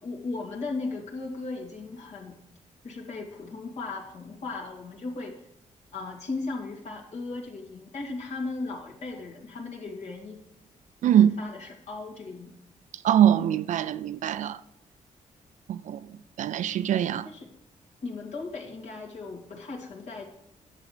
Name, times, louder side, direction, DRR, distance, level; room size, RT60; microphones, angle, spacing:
voice 1, 0.0-2.4 2.8-5.3 5.9-10.4 11.1-12.5 17.2-17.5 18.0-20.3, left 3 dB, 60° left, 2.5 m, -36 dB
voice 2, 13.0-14.6 15.7-16.0 16.4-17.3, right 10 dB, 70° right, 0.5 m, -22 dB
11.0 x 7.5 x 5.0 m
wide cardioid pair, 145°, 13 cm